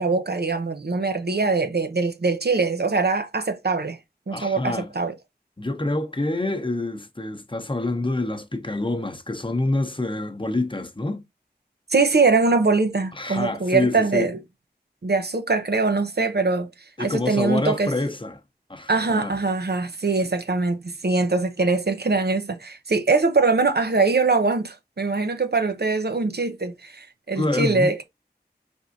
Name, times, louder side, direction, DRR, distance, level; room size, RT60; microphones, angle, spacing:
voice 1, 0.0-4.0 4.3-5.1 11.9-14.4 15.0-16.7 17.0-17.9 18.9-28.0, right 3 dB, 70° right, 0.7 m, -22 dB
voice 2, 4.3-4.9 5.6-11.2 13.1-14.3 17.0-18.4 18.7-19.4 27.3-27.9, left 2 dB, 30° left, 0.8 m, -27 dB
4.8 x 3.6 x 2.6 m
wide cardioid pair, 45°, 17 cm